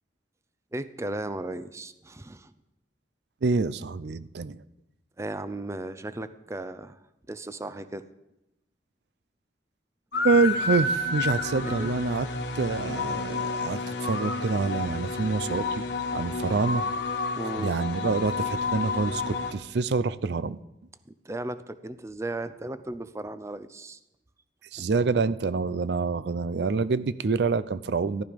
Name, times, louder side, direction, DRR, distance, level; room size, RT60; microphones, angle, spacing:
voice 1, 0.7-2.5 5.2-7.0 7.3-8.0 11.6-12.0 17.3-17.8 21.1-24.0 24.8-24.9, right 2 dB, 15° right, 12 dB, 0.5 m, -36 dB
voice 2, 3.4-4.6 10.2-12.3 12.5-15.8 16.1-16.8 17.6-20.6 24.7-28.2, right 4 dB, 65° right, 15 dB, 0.5 m, -26 dB
sound 1, 10.1-19.5, left 3 dB, 70° left, 1.5 m, -30 dB
14.5 x 12.0 x 5.2 m, 0.88 s
head